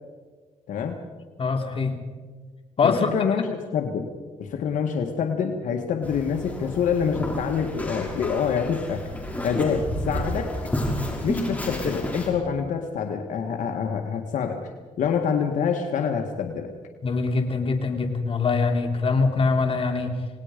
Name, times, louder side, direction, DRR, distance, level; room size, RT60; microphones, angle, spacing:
voice 1, 0.7-1.0 2.8-4.1 4.4-9.1 9.4-10.5 11.2-14.6 15.0-16.7, left 6 dB, 75° left, 4 dB, 1.8 m, -26 dB
voice 2, 1.4-2.0 2.8-3.1 17.0-20.1, left 4 dB, 45° left, 4 dB, 3.2 m, -23 dB
sound 1, 6.0-12.3, left 1 dB, 10° left, 6.0 m, -30 dB
28.5 x 19.0 x 5.2 m, 1.5 s
cardioid pair, 90°, 13 cm